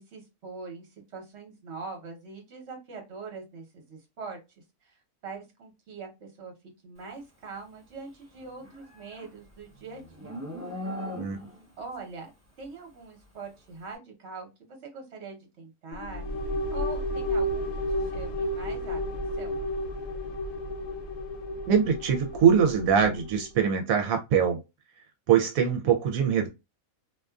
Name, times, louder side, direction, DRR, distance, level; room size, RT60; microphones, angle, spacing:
voice 1, 0.0-4.4 4.8-6.5 6.8-10.4 11.8-12.3 12.6-16.2 16.7-17.7 18.0-19.5, right 4 dB, 55° right, 1.2 m, -43 dB
Livestock farm animals working animals, 8.4-11.7, equal, 15° right, 1.0 m, -39 dB
voice 2, 11.1-11.5 21.7-24.6 25.3-26.5, right 7 dB, 85° right, 1.0 m, -23 dB
sound 1, 15.9-23.5, left 1 dB, 75° left, 0.9 m, -32 dB
2.5 x 2.4 x 2.2 m
omnidirectional pair, 1.4 m